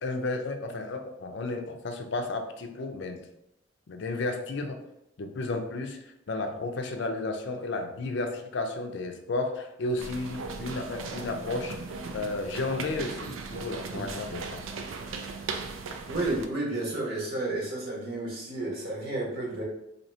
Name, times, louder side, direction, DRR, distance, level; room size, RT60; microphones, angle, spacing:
voice 1, 0.0-3.2 3.9-4.8 5.2-11.8 12.1-14.6, left 2 dB, 60° left, 5 dB, 0.5 m, -33 dB
sound 1, 10.0-16.5, right 4 dB, 85° right, 0.4 m, -38 dB
voice 2, 16.1-19.6, right 2 dB, 50° right, -4 dB, 1.2 m, -31 dB
2.8 x 2.8 x 4.2 m, 0.82 s
head